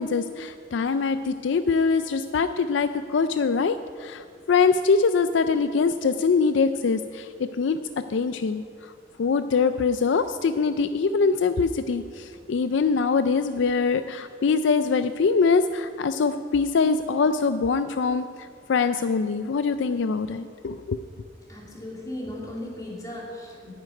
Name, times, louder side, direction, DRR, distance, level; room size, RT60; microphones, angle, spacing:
voice 1, 0.0-7.8 8.1-8.6 9.2-18.3 18.7-21.0, left 5 dB, 65° left, 10 dB, 0.4 m, -23 dB
voice 2, 21.5-23.7, left 1 dB, 20° left, -3 dB, 2.8 m, -36 dB
9.5 x 7.7 x 9.2 m, 2.2 s
head